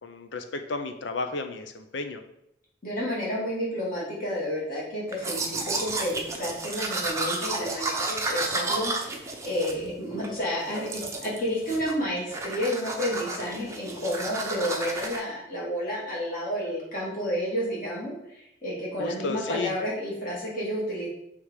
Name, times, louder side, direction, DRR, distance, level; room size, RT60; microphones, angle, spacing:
voice 1, 0.0-2.2 19.0-19.7, left 3 dB, 75° left, 7 dB, 0.6 m, -33 dB
voice 2, 2.8-21.1, equal, 45° left, -6 dB, 2.6 m, -31 dB
Domestic sounds home sounds, 5.1-10.3 10.7-11.4 11.7-12.0 12.3-15.2, right 3 dB, 15° right, 0.7 m, -32 dB
7.2 x 3.4 x 4.8 m, 0.81 s
head